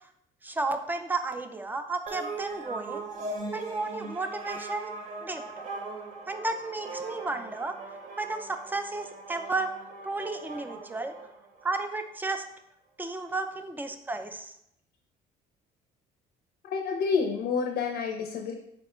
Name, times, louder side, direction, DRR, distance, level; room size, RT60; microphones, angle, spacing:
voice 1, 0.4-3.0 3.5-4.9 5.2-5.4 6.3-7.7 8.2-9.7 10.0-11.1 11.6-12.4 13.0-14.5, right 3 dB, 10° right, 7 dB, 0.3 m, -33 dB
sound 1, 2.1-11.8, right 3 dB, 45° right, 0.8 m, -40 dB
voice 2, 16.7-18.5, left 5 dB, 70° left, 2 dB, 0.5 m, -28 dB
4.2 x 2.1 x 4.3 m, 0.77 s
cardioid pair, 110°, 17 cm